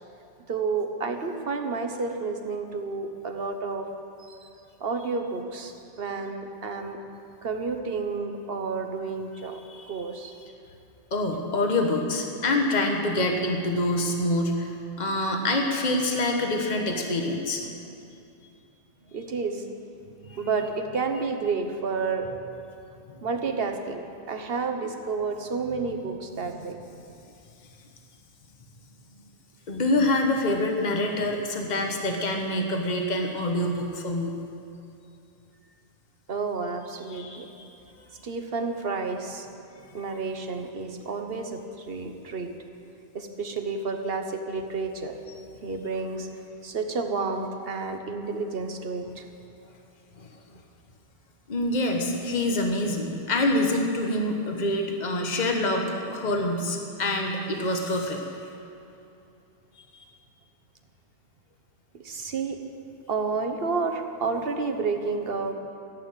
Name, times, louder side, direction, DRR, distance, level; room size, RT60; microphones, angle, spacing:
voice 1, 0.5-3.9 4.2-4.5 4.8-7.0 7.4-10.3 19.0-19.8 20.1-22.3 23.2-27.1 36.3-37.5 38.2-39.5 39.9-42.5 43.1-45.2 45.6-46.3 46.6-49.3 56.2-56.3 61.9-62.6 63.1-65.5, right 4 dB, 65° right, 6 dB, 1.3 m, -30 dB
voice 2, 11.1-17.6 20.3-20.4 29.7-34.3 37.1-37.7 49.0-49.2 50.2-50.3 51.5-58.2 59.9-60.0, left 1 dB, 45° left, 2 dB, 1.4 m, -26 dB
14.5 x 8.6 x 9.0 m, 2.7 s
omnidirectional pair, 1.1 m